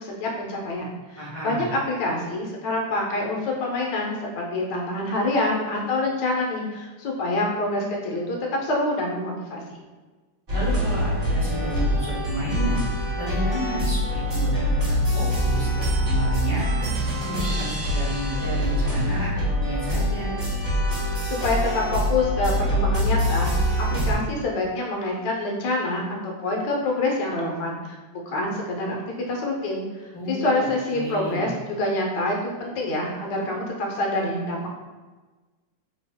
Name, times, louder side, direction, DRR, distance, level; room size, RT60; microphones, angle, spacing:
voice 1, 0.0-9.8 21.2-23.6 23.9-29.0 29.3-34.7, left 2 dB, 70° left, -1 dB, 1.2 m, -26 dB
voice 2, 1.2-1.7 10.5-12.9 13.2-15.7 16.0-16.9 17.3-20.3 30.1-31.5, equal, 35° left, -11 dB, 0.5 m, -32 dB
sound 1, 10.5-24.1, equal, 35° right, 1.0 m, -24 dB
3.4 x 2.3 x 3.4 m, 1.3 s
omnidirectional pair, 2.3 m